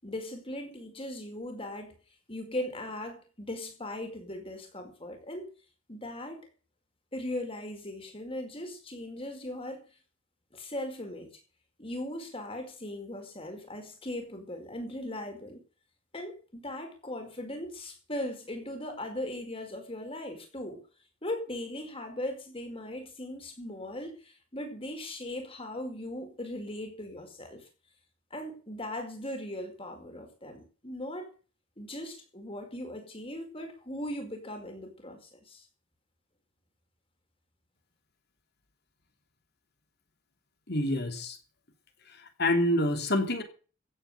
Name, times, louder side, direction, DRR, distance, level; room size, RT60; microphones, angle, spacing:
voice 1, 0.0-1.9 2.3-5.5 5.9-6.4 7.1-9.8 10.5-11.4 11.8-15.6 16.1-20.8 21.2-27.6 28.3-31.3 31.8-35.7, left 1 dB, 25° left, 4.9 m, -39 dB
voice 2, 40.7-41.4 42.1-43.4, left 1 dB, 50° left, 3.1 m, -27 dB
15.5 x 9.3 x 6.8 m
head